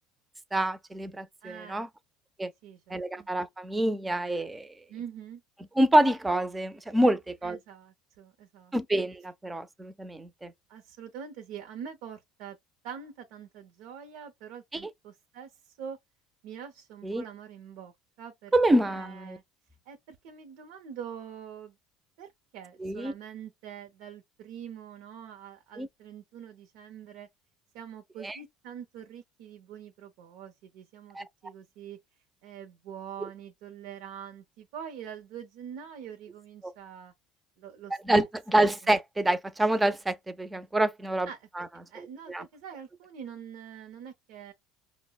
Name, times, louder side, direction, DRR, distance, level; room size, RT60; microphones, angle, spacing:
voice 1, 0.5-1.9 2.4-2.5 2.9-4.7 5.8-7.6 8.7-10.5 14.7-14.9 17.0-17.2 18.5-19.4 22.8-23.1 25.8-25.9 28.2-28.4 31.1-31.2 33.2-33.3 36.6-36.7 38.0-41.3 41.6-41.7 42.0-42.5, right 1 dB, 10° right, 0.4 m, -27 dB
voice 2, 1.4-1.9 2.6-3.3 4.9-5.4 7.4-8.7 10.7-12.6 12.8-16.0 16.4-17.9 18.2-18.5 18.8-19.4 19.9-21.8 22.2-27.3 27.7-32.0 32.4-37.1 37.6-38.2 41.3-41.5 41.9-44.5, right 8 dB, 75° right, 0.6 m, -44 dB
5.3 x 2.0 x 2.2 m
cardioid pair, 140°, 0 cm